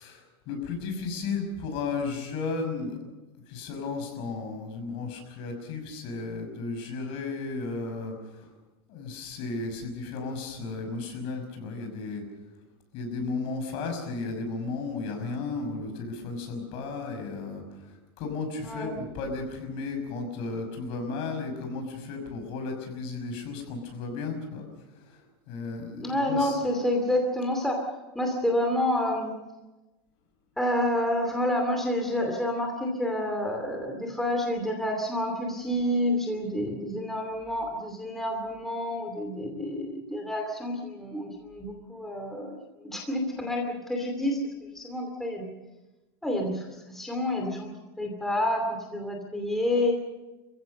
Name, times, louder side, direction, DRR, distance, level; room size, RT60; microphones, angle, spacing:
voice 1, 0.0-3.0 3.5-8.5 8.9-12.2 12.9-24.6 25.0-25.2 25.5-26.6, left 4 dB, 45° left, 5 dB, 5.8 m, -34 dB
voice 2, 18.6-19.0 26.0-27.8 28.1-29.3 30.6-45.5 46.2-47.7 48.0-49.9, left 1 dB, ahead, 1 dB, 2.6 m, -29 dB
28.0 x 16.0 x 6.7 m, 1.1 s
supercardioid pair, 160°, 13 cm